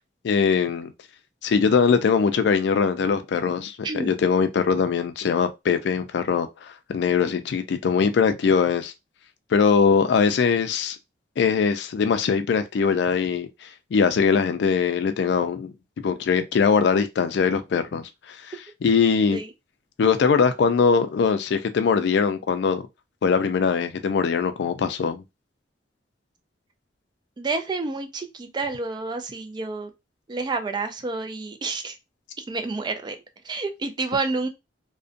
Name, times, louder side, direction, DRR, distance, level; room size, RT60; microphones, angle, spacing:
voice 1, 0.2-0.9 1.4-8.9 9.5-11.0 11.4-18.6 18.8-19.4 20.0-22.9 23.2-25.2, left 5 dB, 65° left, 0.3 m, -22 dB
voice 2, 3.8-4.2 19.3-19.5 27.4-29.9 30.3-31.9 32.4-33.2 33.4-34.5, right 3 dB, 25° right, 0.3 m, -29 dB
2.5 x 2.2 x 2.5 m
head